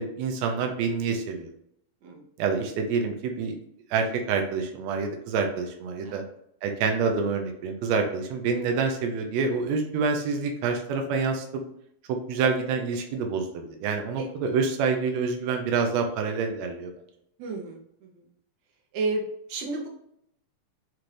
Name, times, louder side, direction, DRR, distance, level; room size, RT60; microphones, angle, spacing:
voice 1, 0.0-1.5 2.4-3.6 3.9-6.2 6.6-11.4 12.1-16.9, right 5 dB, 90° right, 3 dB, 1.5 m, -27 dB
voice 2, 17.4-18.3 18.9-19.9, right 3 dB, 70° right, 1 dB, 1.9 m, -32 dB
5.7 x 2.5 x 3.2 m, 0.71 s
omnidirectional pair, 3.8 m